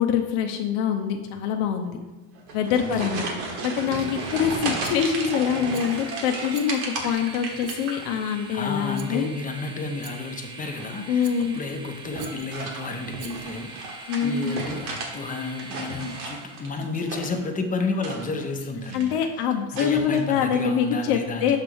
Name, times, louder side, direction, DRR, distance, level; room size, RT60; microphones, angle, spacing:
voice 1, 0.0-2.0 2.5-3.3 3.6-9.3 11.1-11.6 14.1-14.6 18.9-21.6, left 7 dB, 80° left, 4 dB, 0.7 m, -25 dB
sound 1, 2.3-8.4 8.7-9.2 10.6-11.0 12.0-15.1 15.4-17.5 17.9-18.5 18.8-19.3 19.8-20.2, right 3 dB, 80° right, 1.6 m, -34 dB
voice 2, 2.8-3.3 8.5-19.2 19.7-21.6, left 3 dB, 20° left, 4 dB, 0.7 m, -31 dB
Train, 3.4-16.9, right 3 dB, 15° right, 0.4 m, -43 dB
Rattle, 4.8-5.3 5.7-6.1 6.5-7.0 7.6-8.2 9.0-9.3 10.0-10.4 11.2-11.7 12.2-12.6 13.2-13.6, right 7 dB, 45° right, 0.8 m, -46 dB
6.5 x 3.5 x 6.1 m, 1.1 s
cardioid pair, 135°, 43 cm